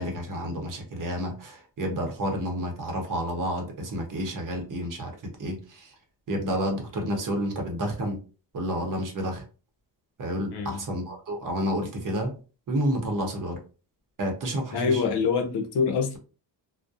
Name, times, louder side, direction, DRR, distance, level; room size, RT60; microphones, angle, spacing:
voice 1, 0.0-5.1 5.4-5.9 6.3-8.2 8.5-9.4 10.2-12.3 12.7-13.6 14.2-14.9, equal, 45° right, 0.8 m, -30 dB
voice 2, 10.5-10.9 14.7-16.2, left 5 dB, 60° left, 0.7 m, -25 dB
2.3 x 2.1 x 2.6 m
cardioid pair, 100°, 45 cm